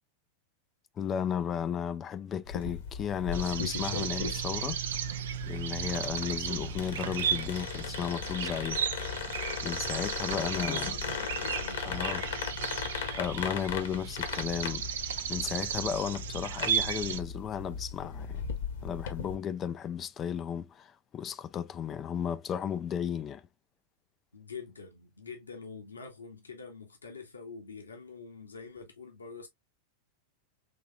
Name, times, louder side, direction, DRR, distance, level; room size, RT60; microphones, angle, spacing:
voice 1, 1.0-4.8 5.5-8.9 9.6-10.9 11.9-12.3 13.1-14.8 15.3-18.4 18.8-23.4, left 8 dB, 25° left, 0.4 m, -34 dB
sound 1, 2.5-19.3, left 6 dB, 60° left, 1.1 m, -37 dB
sound 2, 3.3-17.2, right 9 dB, 60° right, 0.5 m, -35 dB
voice 2, 10.3-11.9 24.3-29.5, left 5 dB, 75° left, 1.2 m, -45 dB
5.9 x 3.4 x 2.3 m
figure-of-eight pair, 90°, 0 cm